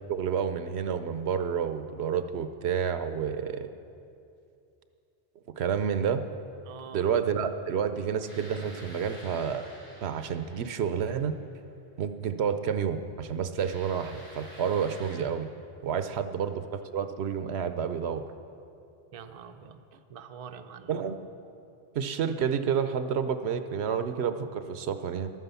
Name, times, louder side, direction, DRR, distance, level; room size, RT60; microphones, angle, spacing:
voice 1, 0.1-3.7 5.6-6.2 6.9-9.7 10.0-11.3 12.0-15.5 15.8-18.2 20.9-21.3 21.9-25.3, right 7 dB, 75° right, 10 dB, 0.9 m, -29 dB
voice 2, 6.6-7.0 15.9-16.2 19.1-19.8 20.1-20.9, right 7 dB, 40° right, 7 dB, 0.5 m, -45 dB
sound 1, 8.3-11.5 13.6-15.2, equal, 75° left, 3.5 m, -49 dB
12.5 x 9.5 x 6.9 m, 2.6 s
omnidirectional pair, 1.1 m